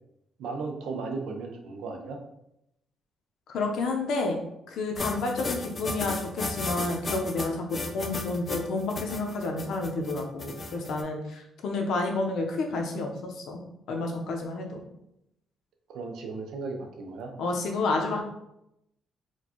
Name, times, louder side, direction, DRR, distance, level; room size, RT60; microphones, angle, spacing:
voice 1, 0.4-2.2 15.9-17.3, right 4 dB, 70° right, 3 dB, 0.6 m, -35 dB
voice 2, 3.5-4.4 4.7-14.8 17.4-18.2, left 3 dB, 65° left, 2 dB, 0.6 m, -30 dB
sound 1, 5.0-11.0, left 3 dB, 20° left, 0.3 m, -34 dB
4.3 x 2.2 x 2.9 m, 0.81 s
cardioid pair, 180°, 0 cm